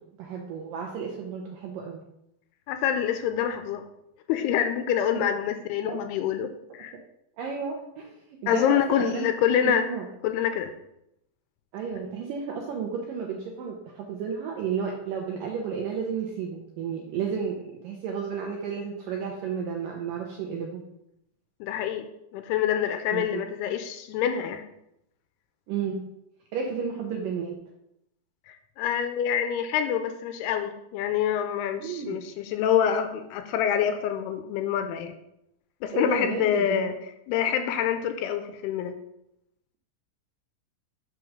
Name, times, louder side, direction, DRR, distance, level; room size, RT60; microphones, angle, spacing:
voice 1, 0.2-2.0 5.1-5.3 5.8-6.0 7.4-9.3 9.6-10.1 11.7-20.8 23.1-23.4 25.7-26.0 26.5-27.6 31.8-32.2 35.9-36.9, right 6 dB, 80° right, 1 dB, 2.0 m, -32 dB
voice 2, 2.7-3.9 4.3-6.9 8.5-9.9 10.2-10.7 21.6-22.1 22.3-24.6 28.5-35.1 35.8-36.9 37.3-39.0, left 9 dB, 80° left, 8 dB, 2.5 m, -26 dB
6.1 x 4.7 x 6.4 m, 0.82 s
omnidirectional pair, 4.8 m